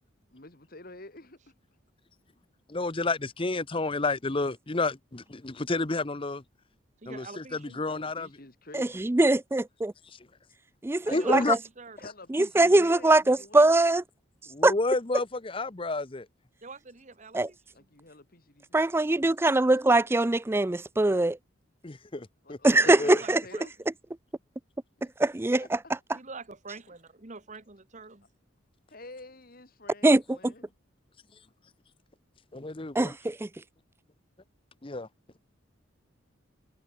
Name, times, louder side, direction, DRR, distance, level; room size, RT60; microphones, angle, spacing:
voice 1, 0.3-1.5 7.9-9.1 11.0-11.5 12.0-13.8 17.7-18.9 22.4-23.7 25.0-25.1 25.6-25.8 28.9-30.6, left 2 dB, 45° left, 2.7 m, -48 dB
voice 2, 2.7-6.4 7.1-8.3 10.1-10.2 11.1-11.6 14.5-16.3 21.8-22.6 23.0-23.2 32.5-33.1 34.8-35.1, left 3 dB, 25° left, 0.8 m, -30 dB
voice 3, 7.0-7.8 11.1-12.1 16.6-17.8 22.7-23.7 26.1-28.3, right 3 dB, 35° right, 1.3 m, -45 dB
voice 4, 8.7-9.9 10.8-11.6 12.3-14.0 14.6-14.7 17.3-17.5 18.7-21.4 22.6-23.4 25.2-25.8 30.0-30.2 32.9-33.5, right 2 dB, 10° right, 0.3 m, -22 dB
head